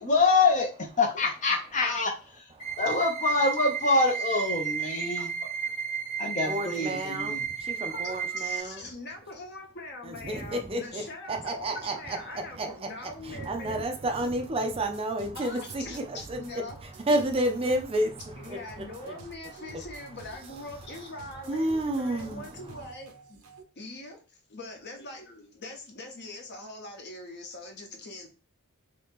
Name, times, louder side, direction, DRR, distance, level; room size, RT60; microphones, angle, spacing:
voice 1, 0.0-2.5 2.8-5.3 6.2-7.4, left 3 dB, 35° left, 0.5 m, -25 dB
sound 1, 2.6-8.6, right 7 dB, 20° left, 1.2 m, -33 dB
voice 2, 5.2-5.5 7.9-13.8 15.3-16.8 18.4-23.4 23.8-28.3, left 2 dB, 50° left, 0.9 m, -42 dB
voice 3, 6.4-8.9 10.0-11.0 11.3-16.4 16.8-19.1 20.9-21.1 21.5-22.6, right 1 dB, 25° right, 0.4 m, -31 dB
sound 2, 13.3-23.6, right 3 dB, 75° right, 0.7 m, -49 dB
2.8 x 2.8 x 3.5 m
head